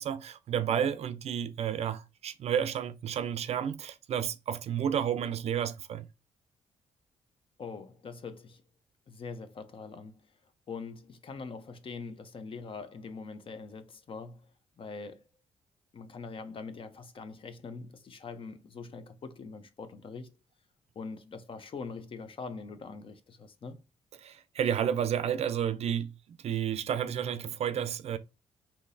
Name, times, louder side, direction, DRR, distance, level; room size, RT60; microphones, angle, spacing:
voice 1, 0.0-6.1 24.2-26.1 26.4-28.2, right 9 dB, 55° right, 0.4 m, -31 dB
voice 2, 7.6-8.6 9.1-10.2 10.7-14.4 14.8-15.2 15.9-20.3 21.0-23.8, left 4 dB, 45° left, 0.6 m, -43 dB
3.7 x 2.8 x 2.6 m
supercardioid pair, 70°, 12 cm